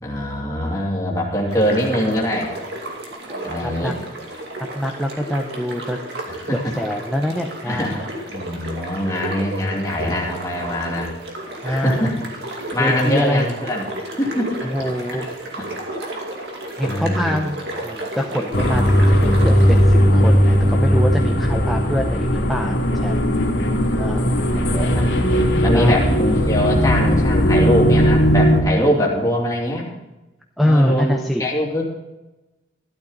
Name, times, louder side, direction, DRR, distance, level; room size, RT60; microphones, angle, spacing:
voice 1, 0.0-2.5 3.4-3.9 6.4-6.7 7.7-8.0 8.3-11.1 11.6-12.1 12.7-14.6 15.1-15.3 15.6-15.7 16.8-17.4 21.2-21.5 22.1-22.3 24.6-25.1 25.6-29.9 30.6-31.1 31.4-31.8, equal, 15° left, -3 dB, 2.7 m, -23 dB
sound 1, 1.5-19.8, right 1 dB, 60° right, 2.5 m, -32 dB
voice 2, 3.3-3.9 4.6-6.0 6.7-8.1 11.6-12.1 12.8-13.5 14.6-15.3 16.8-18.9 19.2-23.2 23.6-23.7 24.0-24.6 25.7-26.1 30.6-31.5, equal, ahead, 0 dB, 0.7 m, -24 dB
sound 2, 18.5-28.6, equal, 80° left, 2.6 m, -17 dB
13.0 x 11.5 x 4.0 m, 1.0 s
head